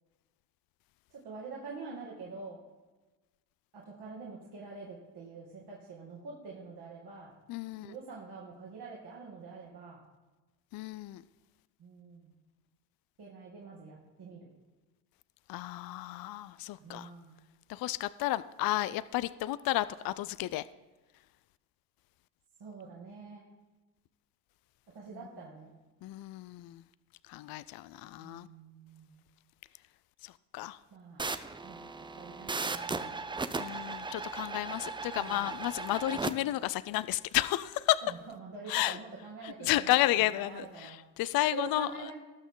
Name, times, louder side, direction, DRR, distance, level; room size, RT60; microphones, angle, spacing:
voice 1, 1.1-2.6 3.7-7.3 7.8-10.0 11.8-12.3 13.2-14.5 16.8-17.3 22.6-23.5 24.9-25.7 28.2-29.2 30.9-31.2 31.6-31.9 32.2-33.1 35.2-35.5 38.0-41.0 41.5-42.1, right 4 dB, 50° right, -4 dB, 2.5 m, -46 dB
voice 2, 7.5-7.9 10.7-11.2 15.5-17.1 17.7-20.6 26.0-26.8 27.3-28.5 30.2-30.8 33.5-38.0 38.7-39.0 39.4-41.9, left 16 dB, 50° left, 16 dB, 0.4 m, -32 dB
sound 1, 31.2-36.3, right 4 dB, 10° right, 0.4 m, -37 dB
18.0 x 6.2 x 3.8 m, 1.2 s
supercardioid pair, 85°, 48 cm